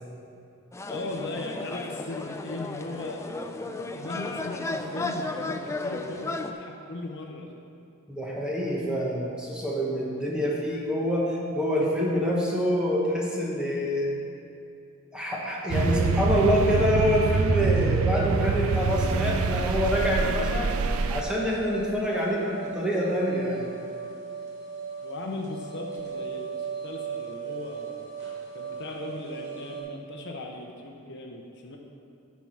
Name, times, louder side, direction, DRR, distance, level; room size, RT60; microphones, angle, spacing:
sound 1, 0.7-6.5, left 2 dB, 15° left, 0.3 m, -34 dB
voice 1, 0.9-3.2 3.8-7.5 25.0-28.1 28.5-31.8, left 2 dB, 55° left, 1 dB, 0.7 m, -38 dB
voice 2, 8.1-14.1 15.1-20.7 21.1-23.7, equal, 5° right, -4 dB, 1.3 m, -26 dB
sound 2, 15.7-21.2, right 4 dB, 70° right, 0.4 m, -25 dB
sound 3, 20.6-29.8, right 6 dB, 55° right, 2.0 m, -38 dB
10.5 x 4.7 x 5.8 m, 2.6 s
head